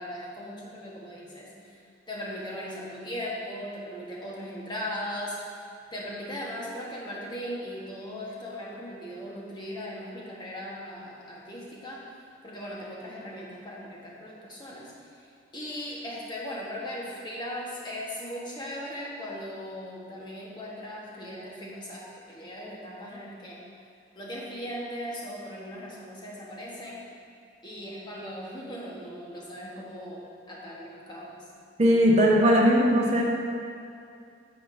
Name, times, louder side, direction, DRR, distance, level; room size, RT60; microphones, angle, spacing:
voice 1, 0.0-5.6 5.9-12.0 12.4-15.3 15.5-23.6 24.1-27.0 27.6-31.4, equal, 25° left, -5 dB, 1.2 m, -38 dB
voice 2, 31.8-33.2, equal, 35° right, -2 dB, 0.9 m, -19 dB
9.8 x 6.8 x 2.6 m, 2.4 s
head